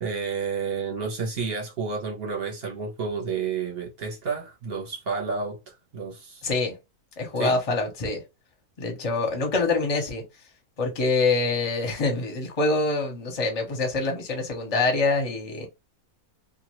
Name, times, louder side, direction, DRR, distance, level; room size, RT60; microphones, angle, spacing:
voice 1, 0.0-6.5 7.4-7.6, right 5 dB, 45° right, 0.9 m, -30 dB
voice 2, 6.4-6.7 7.2-8.2 8.8-10.2 10.8-15.7, left 3 dB, 30° left, 0.7 m, -25 dB
2.5 x 2.4 x 3.0 m
omnidirectional pair, 1.6 m